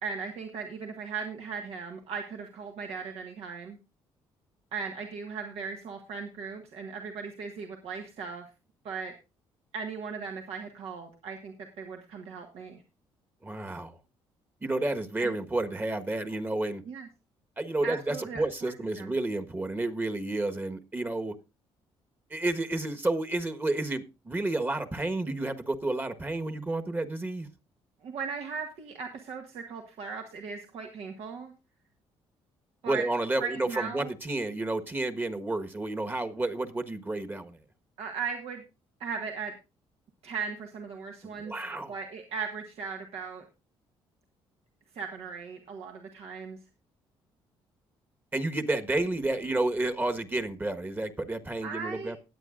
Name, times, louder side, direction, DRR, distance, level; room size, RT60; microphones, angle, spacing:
voice 1, 0.0-3.8 4.7-8.5 8.8-9.1 9.7-12.8 15.2-15.3 16.8-17.1 17.8-19.1 28.0-31.5 32.8-33.0 33.4-34.1 38.0-38.6 39.0-39.5 40.2-41.5 41.9-43.4 44.9-46.6 51.6-52.1, right 5 dB, 70° right, 1.5 m, -37 dB
voice 2, 13.4-14.0 14.6-16.8 17.6-21.3 22.3-27.5 32.8-37.6 41.2-41.9 48.3-52.2, right 2 dB, 20° right, 1.4 m, -31 dB
20.0 x 8.1 x 2.5 m
cardioid pair, 90°, 11 cm